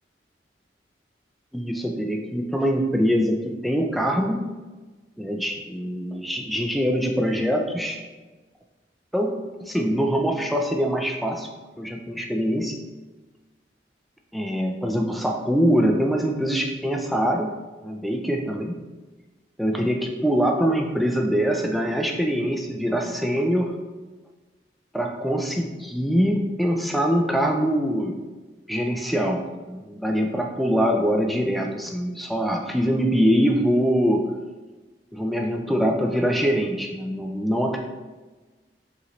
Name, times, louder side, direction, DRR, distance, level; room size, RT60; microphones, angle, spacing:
voice 1, 1.5-4.6 5.2-8.0 9.1-11.5 11.8-12.8 14.3-17.5 17.8-18.8 19.6-23.8 24.9-28.2 28.7-34.3 35.1-37.8, equal, ahead, 2 dB, 0.3 m, -23 dB
4.9 x 3.1 x 2.9 m, 1.3 s
head